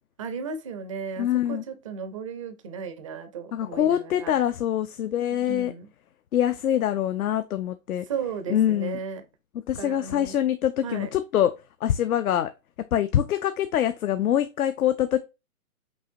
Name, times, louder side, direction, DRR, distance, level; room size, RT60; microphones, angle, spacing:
voice 1, 0.2-4.4 5.5-5.9 8.1-9.2 9.8-10.4 10.8-11.1, right 6 dB, 25° right, 0.4 m, -35 dB
voice 2, 1.2-1.6 3.5-5.7 6.3-8.1 8.5-9.0 9.7-11.5 11.8-12.5 12.9-15.2, left 11 dB, 75° left, 0.6 m, -24 dB
5.4 x 3.0 x 2.6 m
hypercardioid pair, 130°, 43 cm